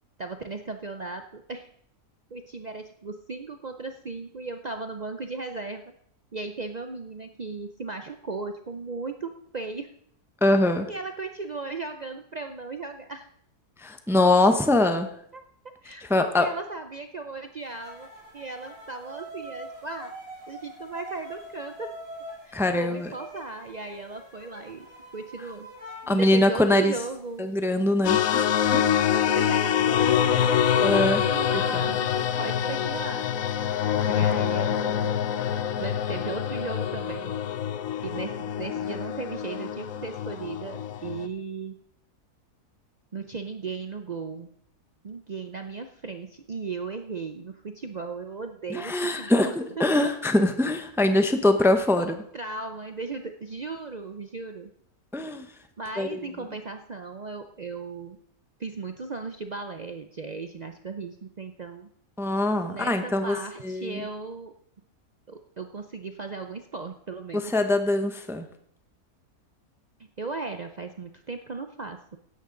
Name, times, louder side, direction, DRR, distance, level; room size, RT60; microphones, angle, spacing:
voice 1, 0.2-1.7 2.3-5.8 6.3-9.9 10.9-13.3 15.3-15.4 15.8-18.1 18.3-20.1 20.5-21.9 22.5-24.9 25.1-25.7 26.1-27.5 29.1-33.3 34.0-35.1 35.8-37.4 38.0-41.8 43.1-44.5 45.0-50.1 52.0-54.7 55.8-58.2 58.6-61.9 62.7-64.5 65.3-67.5 70.0-72.2, right 4 dB, 80° right, 6 dB, 0.3 m, -36 dB
voice 2, 10.4-10.9 13.8-15.1 16.1-16.5 22.5-23.0 26.1-26.9 27.4-29.0 30.8-31.3 48.7-52.1 55.1-55.5 56.0-56.2 62.2-63.4 63.6-64.0 67.5-68.4, left 2 dB, 5° right, 7 dB, 0.4 m, -23 dB
sound 1, 17.8-27.1 27.5-28.0, right 1 dB, 55° right, 7.7 m, -44 dB
sound 2, 28.0-41.3, left 9 dB, 65° left, 1.0 m, -25 dB
16.0 x 11.0 x 3.8 m, 0.69 s
omnidirectional pair, 1.7 m